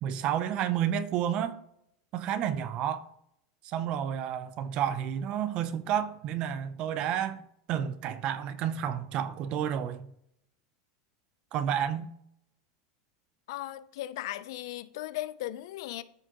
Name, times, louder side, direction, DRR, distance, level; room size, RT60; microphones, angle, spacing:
voice 1, 0.0-1.6 2.1-3.1 3.6-7.4 7.7-10.1 11.5-12.1, right 9 dB, 35° right, 0.5 m, -30 dB
voice 2, 13.5-16.0, left 15 dB, 65° left, 0.4 m, -37 dB
13.5 x 4.5 x 2.9 m
supercardioid pair, 165°, 3 cm